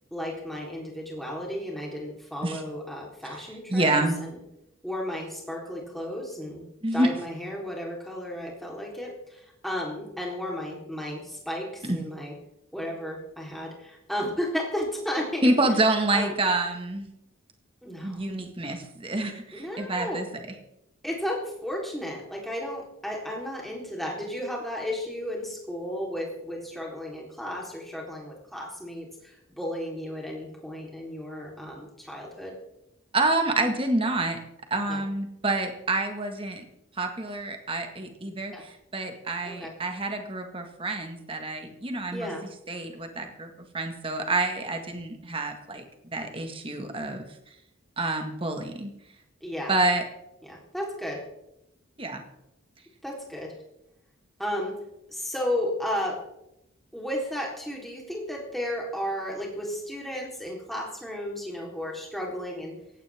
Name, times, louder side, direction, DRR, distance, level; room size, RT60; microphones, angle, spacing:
voice 1, 0.1-4.4 4.8-6.6 6.9-12.3 12.7-15.5 16.1-16.3 17.8-18.2 19.5-20.2 21.0-32.5 34.9-35.0 38.5-38.6 39.5-39.7 42.1-42.4 49.4-49.7 50.5-51.2 53.0-53.5 54.4-54.8 55.1-56.2 56.9-62.7, left 1 dB, ahead, -2 dB, 3.7 m, -33 dB
voice 2, 3.7-4.2 6.8-7.1 11.8-12.0 15.4-17.1 18.0-20.4 33.1-34.4 34.7-36.6 37.0-42.3 42.7-47.3 48.0-48.9 49.7-50.1 52.0-52.2, right 2 dB, 25° right, 5 dB, 1.8 m, -27 dB
17.5 x 16.0 x 3.6 m, 0.83 s
head